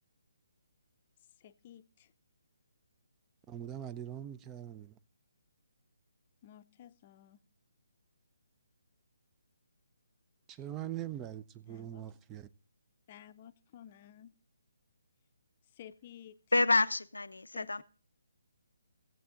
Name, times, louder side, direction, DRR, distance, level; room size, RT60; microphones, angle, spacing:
voice 1, 1.4-2.1 6.4-7.4 11.7-12.1 13.1-14.3 15.7-16.4 17.5-17.8, left 10 dB, 35° left, 0.5 m, -53 dB
voice 2, 3.5-5.0 10.5-12.5, right 11 dB, 15° right, 0.4 m, -42 dB
voice 3, 16.5-17.8, left 2 dB, 85° left, 0.4 m, -28 dB
17.0 x 7.6 x 3.8 m
figure-of-eight pair, 145°, 0 cm